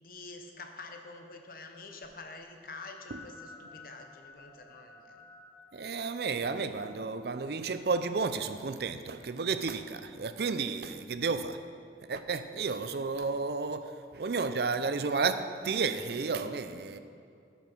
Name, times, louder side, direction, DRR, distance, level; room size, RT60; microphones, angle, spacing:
voice 1, 0.0-5.2, left 3 dB, 50° left, 1.0 m, -47 dB
sound 1, 3.1-8.5, left 3 dB, 15° left, 0.9 m, -54 dB
voice 2, 5.7-11.6 12.1-17.0, right 4 dB, 60° right, 0.5 m, -32 dB
12.0 x 5.8 x 6.1 m
head